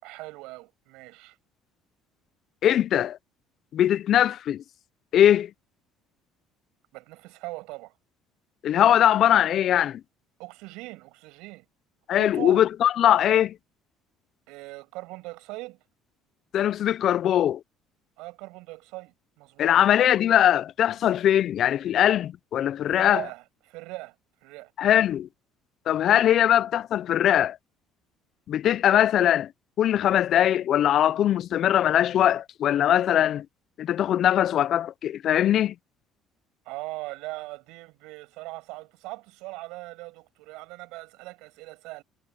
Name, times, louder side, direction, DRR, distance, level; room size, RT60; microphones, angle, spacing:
voice 1, 0.0-1.4 6.9-8.0 10.4-11.7 12.2-12.7 14.5-15.8 18.2-19.8 22.9-24.1 24.4-24.7 36.6-42.0, right 22 dB, 80° right, 7.7 m, -40 dB
voice 2, 2.6-3.2 3.7-4.6 5.1-5.5 8.6-10.0 12.1-13.5 16.5-17.6 19.6-23.2 24.8-25.3 25.9-27.6 28.5-29.5 29.8-33.5 33.8-35.7, left 11 dB, 40° left, 0.3 m, -21 dB
cardioid pair, 175°, 0 cm